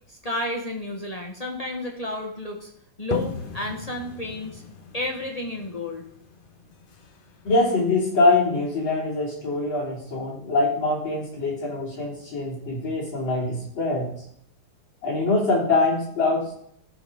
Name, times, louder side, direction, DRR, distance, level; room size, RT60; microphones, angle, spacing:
voice 1, 0.1-2.7 3.0-4.6 4.9-6.0, left 1 dB, 25° left, 0 dB, 0.9 m, -31 dB
sound 1, 3.1-8.6, left 4 dB, 55° left, 0.6 m, -38 dB
voice 2, 7.4-14.1 15.0-16.5, left 2 dB, 80° left, -5 dB, 3.8 m, -23 dB
13.5 x 5.0 x 5.0 m, 0.69 s
omnidirectional pair, 2.1 m